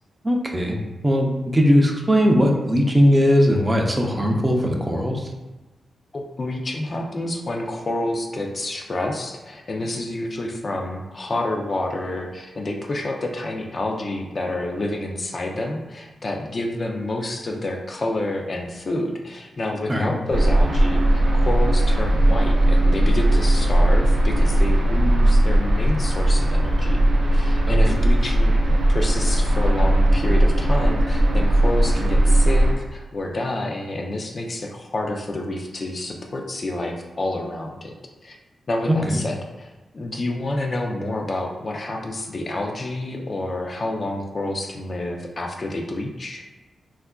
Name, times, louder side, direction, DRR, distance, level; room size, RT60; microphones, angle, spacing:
voice 1, 0.2-0.8 1.0-5.3 19.9-20.1 27.7-28.0 39.1-39.2, equal, 15° right, 1 dB, 0.4 m, -19 dB
voice 2, 6.1-27.0 27.3-28.6 28.9-37.9 38.2-38.4 38.7-46.4, left 2 dB, 45° left, 1 dB, 0.4 m, -28 dB
sound 1, 20.3-32.7, right 1 dB, 75° right, 0.5 m, -18 dB
3.4 x 2.4 x 2.2 m, 1.1 s
cardioid pair, 80°, 0 cm